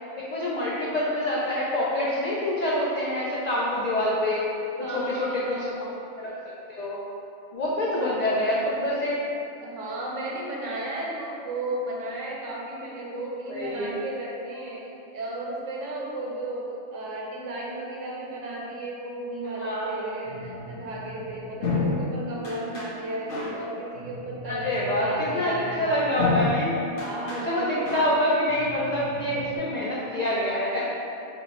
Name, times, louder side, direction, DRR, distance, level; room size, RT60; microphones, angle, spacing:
voice 1, 0.2-4.4 4.9-7.0 7.5-9.2 13.5-13.9 19.6-20.2 24.4-26.7 27.4-30.8, left 1 dB, 85° left, -6 dB, 0.3 m, -26 dB
voice 2, 4.8-5.9 9.6-25.9 26.9-27.9, right 1 dB, 70° right, -3 dB, 1.1 m, -34 dB
sound 1, 20.2-29.6, left 2 dB, 60° left, 1.1 m, -33 dB
4.7 x 2.1 x 4.0 m, 2.8 s
omnidirectional pair, 1.4 m